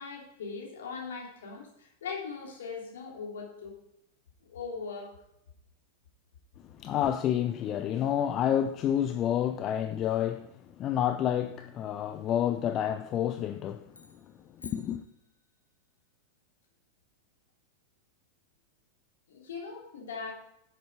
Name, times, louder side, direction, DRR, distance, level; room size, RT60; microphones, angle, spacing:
voice 1, 0.0-3.8 4.5-5.1 19.3-20.3, left 5 dB, 60° left, 3.2 m, -40 dB
voice 2, 6.8-14.1 14.6-15.0, left 10 dB, 35° left, 0.5 m, -29 dB
sound 1, 13.9-15.8, left 4 dB, 80° left, 1.0 m, -53 dB
10.5 x 8.1 x 4.8 m
figure-of-eight pair, 90°, 0 cm